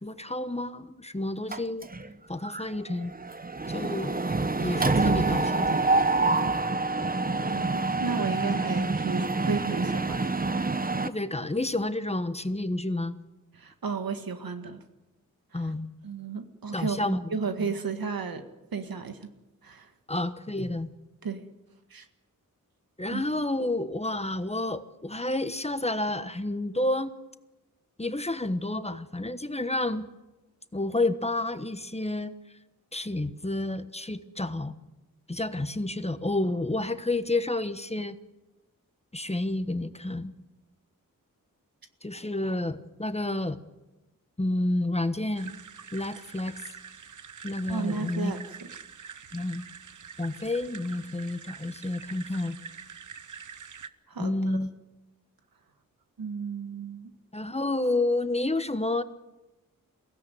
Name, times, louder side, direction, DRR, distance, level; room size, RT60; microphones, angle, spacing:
voice 1, 0.0-1.9 2.3-3.1 3.7-4.2 4.6-5.8 11.0-13.2 15.5-15.9 16.7-17.7 20.1-20.9 23.0-27.2 28.0-30.1 30.7-32.3 32.9-34.7 35.3-38.2 39.1-40.3 42.0-43.6 44.4-45.5 45.9-46.7 47.4-48.3 49.3-49.6 50.2-52.6 54.2-54.7 57.3-59.0, left 2 dB, 20° left, 11 dB, 1.2 m, -30 dB
Mechanisms, 1.5-2.1 2.4-2.7 2.9-11.1, right 3 dB, 25° right, 0.9 m, -26 dB
voice 2, 7.5-10.2 13.6-14.8 15.5-15.6 16.0-18.4 18.7-19.2 19.6-19.9 21.2-21.5 21.9-22.1 23.1-23.2 47.7-48.5 54.1-54.6 56.2-57.1, right 5 dB, 85° right, 7 dB, 1.9 m, -33 dB
sound 1, 45.4-53.9, right 6 dB, 60° right, 0.9 m, -45 dB
22.5 x 16.5 x 9.3 m, 1.1 s
wide cardioid pair, 75°, 34 cm